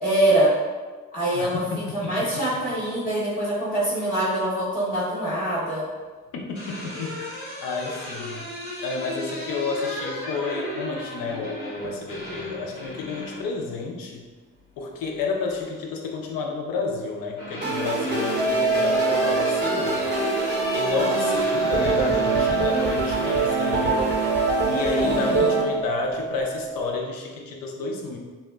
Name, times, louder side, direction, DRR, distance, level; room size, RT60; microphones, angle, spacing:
voice 1, 0.0-0.5 1.1-1.6 1.9-5.9 25.0-25.6, right 1 dB, 25° left, -9 dB, 0.8 m, -24 dB
voice 2, 1.3-2.2 2.5-2.6 6.3-6.6 6.8-7.3 7.6-8.5 8.8-14.3 14.8-20.1 20.7-24.1 24.7-28.2, left 4 dB, 60° left, 1 dB, 0.6 m, -31 dB
sound 1, 6.3-13.5 15.0-15.7 16.9-25.4, left 1 dB, 85° left, 0.9 m, -35 dB
sound 2, 17.6-25.6, right 3 dB, 25° right, 0.6 m, -25 dB
sound 3, 18.4-27.0, right 4 dB, 85° right, 1.0 m, -27 dB
2.8 x 2.1 x 2.3 m, 1.4 s
hypercardioid pair, 40°, 39 cm